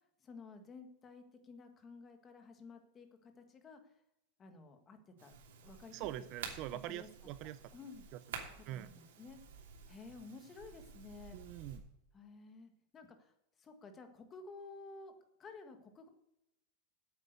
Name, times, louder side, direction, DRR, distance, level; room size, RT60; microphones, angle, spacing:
voice 1, 0.2-3.8 4.4-5.3 5.6-6.3 6.8-7.1 7.4-8.1 8.5-9.4 9.9-11.4 12.1-15.1 15.4-16.1, left 4 dB, 20° left, 6 dB, 1.6 m, -53 dB
sound 1, 5.2-11.8, right 6 dB, 80° right, 3.0 m, -51 dB
voice 2, 5.9-7.6 8.7-8.9 11.3-11.8, right 14 dB, 40° right, 15 dB, 0.5 m, -43 dB
8.8 x 8.0 x 8.1 m, 0.85 s
supercardioid pair, 160°, 0 cm